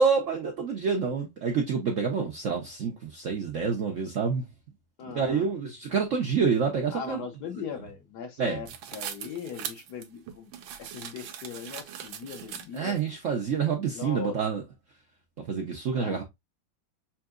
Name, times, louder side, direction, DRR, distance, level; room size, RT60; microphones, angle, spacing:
voice 1, 0.0-4.4 5.1-7.2 8.4-8.6 12.7-14.6 15.5-16.2, right 5 dB, 65° right, 0.7 m, -27 dB
voice 2, 5.0-5.5 6.9-13.0 13.8-14.4 15.9-16.2, left 6 dB, 65° left, 1.2 m, -39 dB
sound 1, 8.7-13.0, right 9 dB, 85° right, 1.5 m, -40 dB
5.7 x 2.7 x 2.4 m
omnidirectional pair, 2.1 m